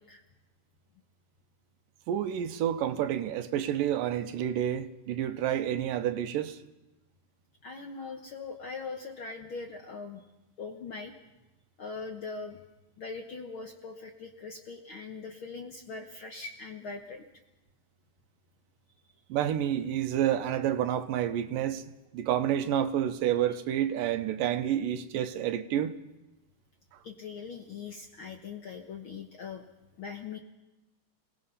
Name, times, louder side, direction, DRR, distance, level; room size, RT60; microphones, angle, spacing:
voice 1, 2.1-6.6 19.3-21.8 22.1-26.0, right 10 dB, 85° right, 2.6 m, -29 dB
voice 2, 7.6-10.2 10.6-11.1 11.8-12.6 13.0-17.2 27.0-29.7 30.0-30.4, left 4 dB, 60° left, 1.4 m, -41 dB
28.0 x 18.0 x 5.7 m
omnidirectional pair, 3.8 m